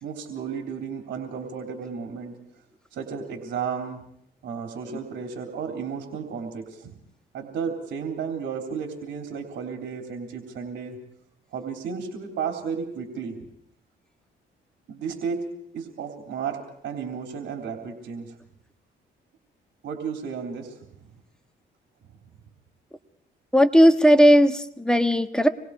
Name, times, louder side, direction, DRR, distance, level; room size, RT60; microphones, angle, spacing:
voice 1, 0.0-2.3 2.9-4.0 4.4-6.9 7.3-11.0 11.5-13.4 14.9-15.4 15.7-18.3 19.8-21.1, right 6 dB, 70° right, 3 dB, 3.5 m, -33 dB
voice 2, 23.5-25.5, equal, 5° left, 8 dB, 1.4 m, -17 dB
26.5 x 21.5 x 4.8 m, 0.71 s
cardioid pair, 85°, 19 cm